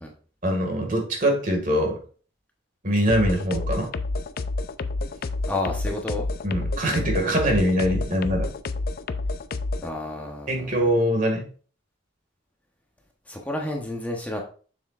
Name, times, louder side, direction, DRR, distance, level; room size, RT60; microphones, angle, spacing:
voice 1, 0.4-2.0 2.8-3.9 6.4-8.5 10.5-11.5, equal, 45° right, 3 dB, 1.9 m, -23 dB
sound 1, 3.1-9.9, left 3 dB, 50° left, 0.5 m, -29 dB
voice 2, 5.5-6.3 9.8-10.7 13.3-14.4, left 2 dB, 10° left, 0 dB, 1.0 m, -30 dB
6.9 x 6.9 x 2.5 m, 0.41 s
head